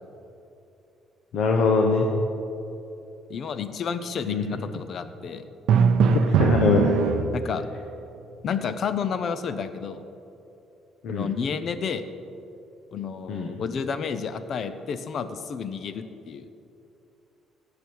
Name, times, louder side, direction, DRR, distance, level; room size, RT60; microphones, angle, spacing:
voice 1, 1.3-2.1 4.2-4.5 6.1-7.0 11.0-11.3 13.3-13.5, left 4 dB, 60° left, 1 dB, 1.0 m, -22 dB
voice 2, 3.3-5.4 7.3-7.6 8.4-10.0 11.1-12.0 12.9-16.5, left 6 dB, 40° left, 11 dB, 0.6 m, -31 dB
Drum, 5.7-7.7, right 6 dB, 65° right, 0.5 m, -21 dB
16.0 x 6.9 x 4.7 m, 2.8 s
cardioid pair, 170°, 0 cm